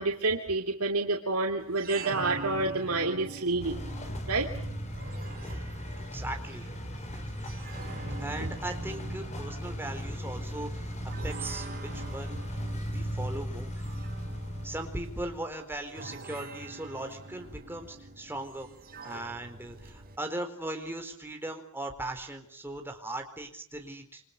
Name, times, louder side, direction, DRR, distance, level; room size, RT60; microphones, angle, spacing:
voice 1, 0.0-3.8 4.3-4.5, right 3 dB, 75° right, 2 dB, 2.8 m, -28 dB
sound 1, 1.6-20.2, right 3 dB, 45° right, 4.4 m, -45 dB
sound 2, 3.6-15.5, equal, 30° left, 4.7 m, -37 dB
voice 2, 6.0-6.7 7.1-7.4 8.2-10.9 11.2-13.8 14.6-18.7 19.0-24.2, right 1 dB, 10° right, 4 dB, 4.2 m, -39 dB
28.5 x 25.5 x 6.9 m, 0.65 s
head